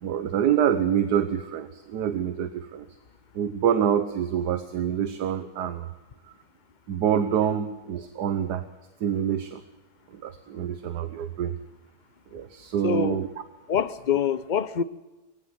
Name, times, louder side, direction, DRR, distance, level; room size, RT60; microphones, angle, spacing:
voice 1, 0.0-2.9 3.3-5.9 6.9-8.6 9.0-9.6 10.1-11.5 12.3-13.3, right 9 dB, 75° right, 1.5 m, -26 dB
voice 2, 12.8-13.2 13.7-14.8, left 7 dB, 45° left, 0.6 m, -25 dB
22.0 x 16.0 x 7.8 m
omnidirectional pair, 1.7 m